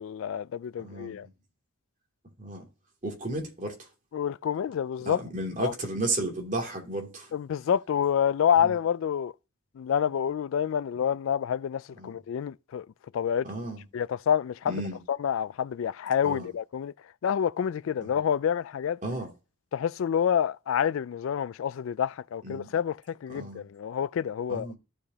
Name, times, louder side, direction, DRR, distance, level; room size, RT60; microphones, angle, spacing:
voice 1, 0.0-1.3 4.1-5.2 5.6-5.7 7.3-9.3 9.8-12.9 13.1-13.5 13.9-14.8 15.1-16.9 17.2-19.0 19.7-24.7, left 8 dB, 70° left, 0.3 m, -28 dB
voice 2, 0.8-1.3 2.4-2.6 3.0-3.7 5.0-7.3 8.6-8.7 12.0-12.1 13.4-13.8 14.7-15.0 16.2-16.5 18.0-18.1 19.0-19.3 22.4-22.7 23.3-23.7 24.5-24.7, right 2 dB, 35° right, 2.7 m, -33 dB
14.0 x 5.0 x 2.8 m
head